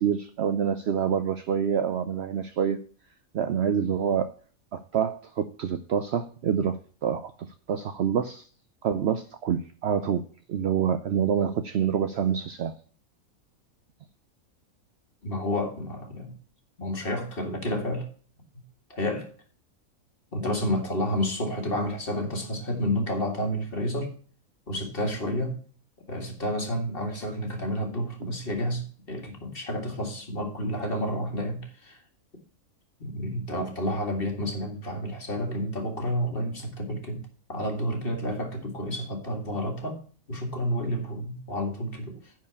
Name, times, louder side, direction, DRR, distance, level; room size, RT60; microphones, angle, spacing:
voice 1, 0.0-2.8 3.3-4.3 4.7-7.3 7.7-8.5 8.8-10.2 10.5-12.7, right 8 dB, 65° right, 10 dB, 0.7 m, -26 dB
voice 2, 15.2-16.3 16.8-18.1 18.5-18.6 18.9-19.3 20.3-24.1 24.7-25.6 26.1-32.0 33.0-42.3, equal, 40° left, 2 dB, 2.1 m, -30 dB
10.0 x 4.7 x 6.9 m, 0.43 s
omnidirectional pair, 1.5 m